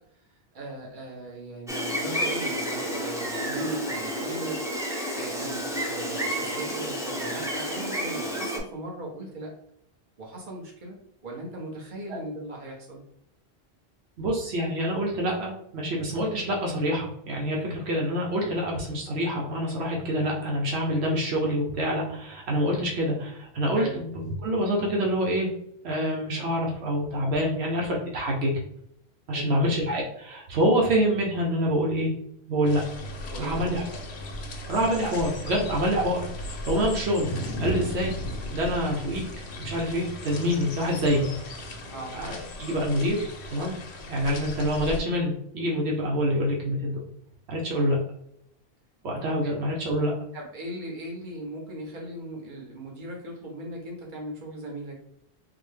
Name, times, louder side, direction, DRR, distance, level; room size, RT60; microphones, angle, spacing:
voice 1, 0.5-4.6 5.1-9.5 10.2-11.0 11.2-13.0 23.7-24.0 29.3-29.7 33.3-33.6 34.9-35.0 41.9-42.1 49.4-49.5 50.3-54.9, right 1 dB, 50° right, -2 dB, 1.1 m, -38 dB
Gull seagull, 1.7-8.6, equal, 5° right, 0.4 m, -30 dB
voice 2, 14.2-25.5 25.8-28.5 29.3-32.1 32.5-32.8 33.4-33.8 34.7-37.3 37.6-38.1 38.5-39.2 39.6-41.3 42.1-43.8 44.1-47.1 47.5-48.0 49.0-50.1, equal, 85° right, -2 dB, 1.1 m, -26 dB
sound 1, 32.6-45.0, left 1 dB, 90° left, 1.0 m, -36 dB
3.9 x 2.1 x 3.3 m, 0.74 s
omnidirectional pair, 1.1 m